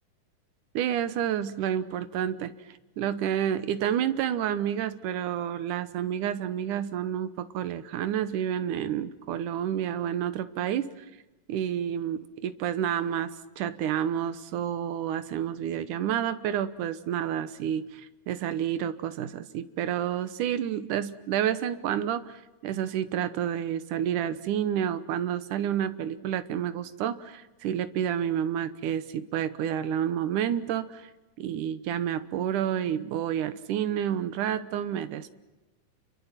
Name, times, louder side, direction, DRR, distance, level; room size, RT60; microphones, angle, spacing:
voice 1, 0.7-2.5 3.0-11.1 11.5-31.1 31.4-35.3, right 10 dB, 70° right, 12 dB, 2.5 m, -29 dB
29.5 x 23.5 x 7.5 m, 1.1 s
omnidirectional pair, 4.0 m